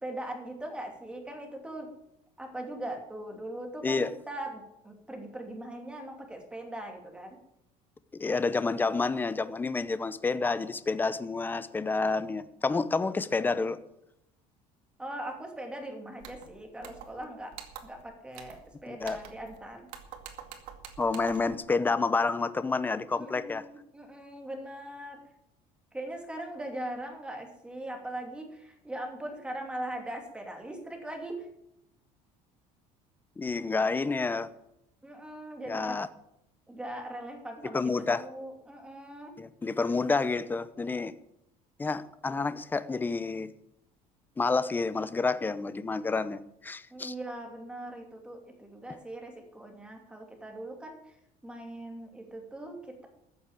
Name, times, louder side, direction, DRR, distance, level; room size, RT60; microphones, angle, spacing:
voice 1, 0.0-1.9 2.4-7.4 15.0-17.5 17.8-19.9 23.1-25.2 25.9-31.5 35.0-36.0 36.7-39.3 46.9-51.0 51.4-53.1, right 1 dB, 5° right, 2 dB, 2.7 m, -40 dB
voice 2, 8.1-13.8 18.9-19.2 21.0-23.6 33.4-34.5 35.7-36.1 37.7-38.2 39.4-41.1 41.8-43.5 44.4-47.1, left 4 dB, 15° left, 13 dB, 0.8 m, -29 dB
sound 1, 16.2-16.5 16.8-17.2 17.5-18.0 18.3-18.7 19.0-19.6 19.9-21.6, right 9 dB, 80° right, 2.1 m, -46 dB
14.5 x 7.2 x 8.8 m, 0.81 s
cardioid pair, 150°, 14 cm